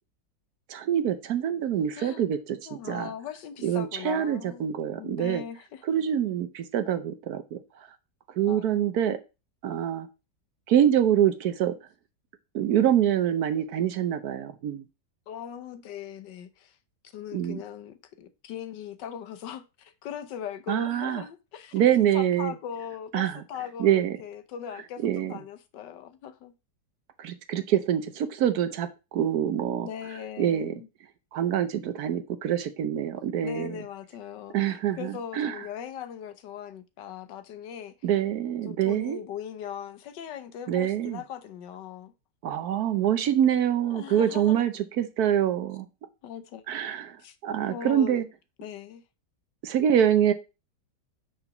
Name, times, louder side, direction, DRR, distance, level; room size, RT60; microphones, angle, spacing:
voice 1, 0.7-2.6 2.9-3.1 3.6-5.4 5.9-7.6 8.4-9.2 9.6-10.1 10.7-11.7 12.5-14.8 17.3-17.6 20.7-21.2 21.7-22.5 23.1-23.4 23.8-24.2 25.0-25.3 27.2-29.9 30.4-30.7 31.3-33.7 34.5-35.6 38.0-39.2 40.7-41.2 42.4-45.9 46.7-47.2 47.4-48.2 49.6-50.3, right 10 dB, 65° right, 1.1 m, -25 dB
voice 2, 2.6-4.7 5.0-5.8 8.4-8.9 15.3-16.8 17.1-21.8 22.1-26.5 29.8-30.9 33.4-37.9 38.6-42.1 43.8-44.6 46.2-46.6 47.2-47.4 47.7-48.2 48.6-49.0, left 8 dB, 80° left, 1.5 m, -39 dB
5.9 x 3.9 x 5.8 m
omnidirectional pair, 1.9 m